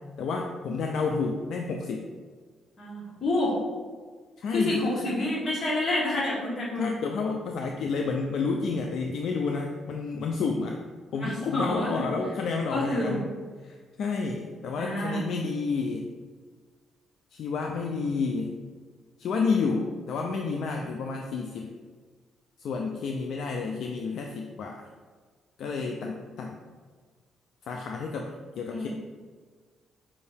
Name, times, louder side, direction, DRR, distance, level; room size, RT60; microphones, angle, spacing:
voice 1, 0.2-2.0 4.4-4.9 6.8-10.8 11.1-13.3 13.6-16.1 17.3-18.6 19.2-21.7 22.6-24.9 25.6-26.6 27.6-28.9, left 4 dB, 70° left, 2 dB, 0.3 m, -30 dB
voice 2, 2.8-3.6 4.5-6.9 11.1-12.1 12.7-13.2 14.8-15.2 28.7-28.9, left 1 dB, 45° left, -5 dB, 1.4 m, -28 dB
5.3 x 2.7 x 3.4 m, 1.5 s
cardioid pair, 90°, 0 cm